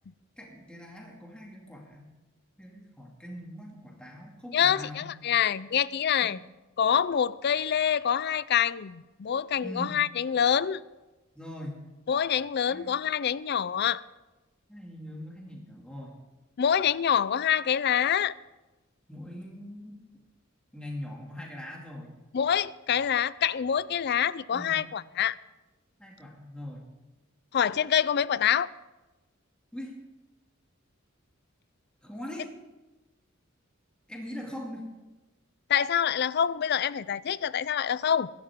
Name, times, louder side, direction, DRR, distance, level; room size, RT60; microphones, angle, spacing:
voice 1, 0.4-2.1 2.6-5.1 9.6-10.0 11.3-11.8 12.7-12.9 14.7-16.1 19.1-20.0 20.7-22.1 24.5-24.8 26.0-26.8 29.7-30.0 32.0-32.5 34.1-34.9, equal, 5° left, 2.4 m, -41 dB
voice 2, 4.5-6.4 6.8-10.8 12.1-14.0 16.6-18.3 22.3-25.3 27.5-28.7 35.7-38.3, left 8 dB, 55° left, 0.4 m, -26 dB
24.0 x 12.0 x 3.7 m
head